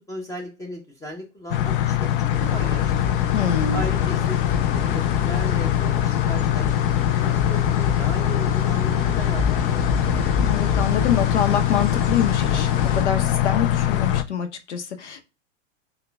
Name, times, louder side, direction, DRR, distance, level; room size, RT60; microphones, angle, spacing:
voice 1, 0.1-3.2 3.7-4.4 4.7-9.9, equal, 10° left, 0.7 m, -36 dB
sound 1, 1.5-14.2, left 12 dB, 50° left, 0.4 m, -22 dB
sound 2, 2.3-13.0, left 4 dB, 35° left, 1.8 m, -29 dB
voice 2, 3.3-3.9 10.4-15.2, left 8 dB, 70° left, 0.9 m, -25 dB
6.5 x 2.3 x 2.2 m
hypercardioid pair, 105°, 35 cm